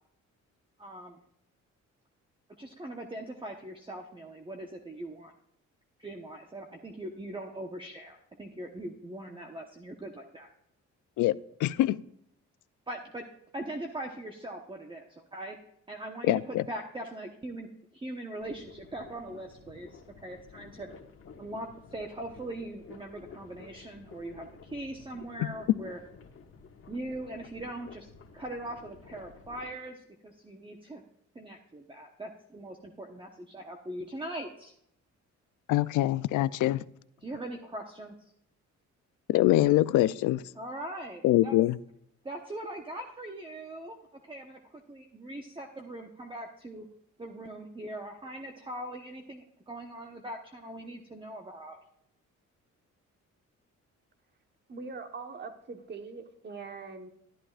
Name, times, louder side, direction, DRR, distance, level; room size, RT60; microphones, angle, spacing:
voice 1, 0.8-1.2 2.6-5.3 6.0-10.5 12.9-13.3 13.5-15.6 15.9-20.9 21.4-26.0 26.9-28.1 28.3-31.0 31.3-34.7 37.2-38.1 40.5-41.5 42.2-44.0 44.2-46.9 47.2-51.8, right 1 dB, 15° right, 1.0 m, -41 dB
voice 2, 11.2-12.0 16.3-16.6 25.4-25.5 35.7-36.8 39.3-40.4 41.2-41.8, left 15 dB, 80° left, 0.5 m, -24 dB
sound 1, 18.4-29.7, left 5 dB, 45° left, 1.5 m, -52 dB
voice 3, 54.7-57.1, right 4 dB, 35° right, 1.3 m, -42 dB
12.5 x 11.5 x 2.5 m
cardioid pair, 90°, 30 cm